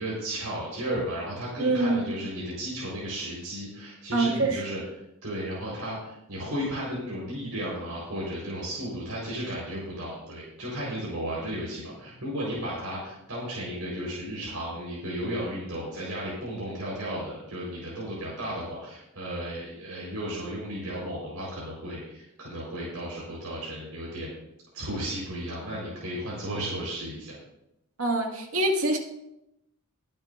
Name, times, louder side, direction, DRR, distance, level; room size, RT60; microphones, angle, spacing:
voice 1, 0.0-4.8 5.2-24.3 24.7-27.3, equal, 85° right, -6 dB, 4.5 m, -34 dB
voice 2, 1.6-2.1 4.1-4.6 28.0-29.0, right 2 dB, 70° right, 1 dB, 2.2 m, -25 dB
22.5 x 8.9 x 2.6 m, 0.86 s
head